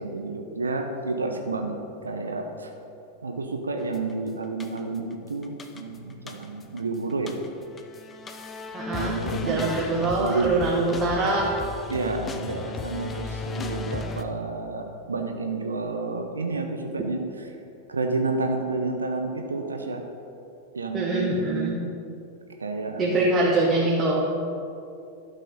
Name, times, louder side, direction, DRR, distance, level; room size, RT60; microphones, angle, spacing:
voice 1, 0.0-1.7 2.0-2.7 3.2-7.3 8.9-9.8 10.2-10.9 11.9-17.2 17.9-20.0 20.7-21.8 22.6-23.3, right 3 dB, 75° right, 4 dB, 0.7 m, -30 dB
sound 1, 3.9-4.1 4.6-5.1 5.4-6.8 7.1-14.2, left 4 dB, 20° left, 0.6 m, -35 dB
voice 2, 8.7-9.2 9.5-11.5 20.9-21.8 23.0-24.3, right 2 dB, 20° right, -4 dB, 1.3 m, -24 dB
11.5 x 5.6 x 5.3 m, 2.7 s
figure-of-eight pair, 90°, 0 cm